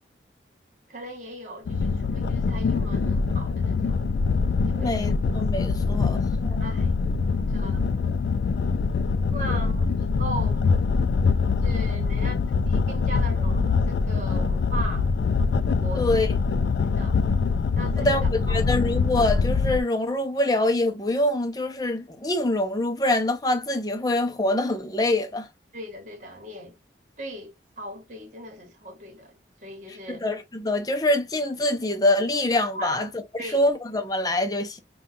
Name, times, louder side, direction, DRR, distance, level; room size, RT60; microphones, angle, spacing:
voice 1, 0.9-4.1 4.7-5.1 6.6-6.9 7.4-7.8 9.3-10.7 11.6-15.1 15.8-16.3 16.8-17.2 17.7-18.6 25.7-26.7 27.2-30.2 32.7-33.1 33.4-33.6, right 1 dB, 45° right, 1.3 m, -38 dB
sound 1, 1.7-19.8, left 4 dB, 75° left, 0.3 m, -24 dB
voice 2, 4.8-6.6 15.9-16.3 18.0-25.5 30.2-33.1 33.4-34.8, left 1 dB, 20° left, 0.5 m, -25 dB
5.3 x 2.3 x 2.6 m
head